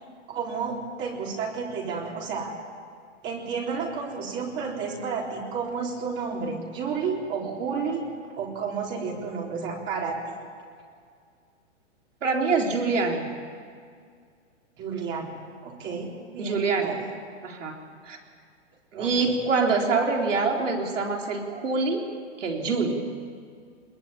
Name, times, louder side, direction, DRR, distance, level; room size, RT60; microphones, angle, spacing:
voice 1, 0.3-2.5 3.2-8.1 8.4-10.4 14.8-15.4 15.6-17.1 18.9-19.4, right 5 dB, 30° right, -2 dB, 4.0 m, -31 dB
voice 2, 12.2-13.3 16.4-17.0 17.4-17.8 18.0-18.2 18.9-22.0 22.4-23.0, right 4 dB, 85° right, 1 dB, 4.1 m, -25 dB
21.5 x 21.5 x 8.9 m, 2.1 s
hypercardioid pair, 140°, 36 cm